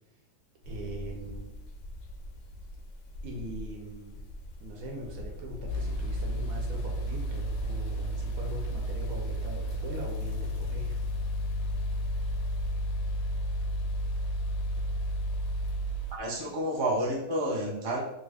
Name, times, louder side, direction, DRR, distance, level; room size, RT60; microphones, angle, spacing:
sound 1, 0.6-12.7, left 1 dB, 65° left, 0.8 m, -45 dB
voice 1, 0.7-1.5 3.2-4.2 4.6-11.0, equal, 70° right, 1 dB, 1.1 m, -41 dB
sound 2, 5.7-16.2, equal, 80° left, 1.1 m, -32 dB
voice 2, 16.1-18.0, right 1 dB, 35° right, -4 dB, 0.4 m, -30 dB
3.1 x 2.4 x 3.4 m, 0.90 s
omnidirectional pair, 1.7 m